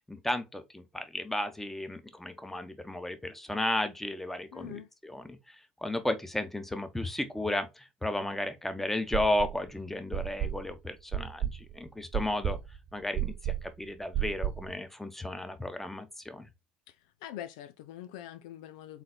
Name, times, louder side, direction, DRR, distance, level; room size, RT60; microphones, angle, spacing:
voice 1, 0.1-12.6 12.9-16.5, left 1 dB, 5° left, 1.0 m, -34 dB
voice 2, 4.5-4.9 16.9-19.0, left 12 dB, 70° left, 0.4 m, -44 dB
sound 1, 9.1-9.7 10.1-14.7, right 10 dB, 40° right, 1.0 m, -33 dB
4.1 x 4.0 x 2.3 m
figure-of-eight pair, 60°, 4 cm